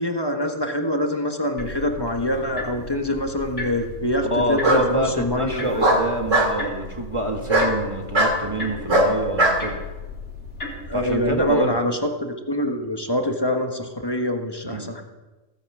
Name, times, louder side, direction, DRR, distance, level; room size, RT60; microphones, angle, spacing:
voice 1, 0.0-6.0 10.9-15.0, left 1 dB, 20° left, 4 dB, 1.5 m, -25 dB
sound 1, 1.6-11.5, left 2 dB, 65° left, 3.8 m, -36 dB
Bark, 2.5-3.1 4.6-4.8 5.8-6.5 7.5-7.7 8.1-8.4 8.9-9.6, right 1 dB, 75° right, 3.0 m, -19 dB
voice 2, 4.2-9.8 10.9-11.8 14.6-14.9, right 1 dB, 25° right, 2 dB, 1.7 m, -26 dB
17.0 x 10.5 x 7.6 m, 1.2 s
omnidirectional pair, 1.3 m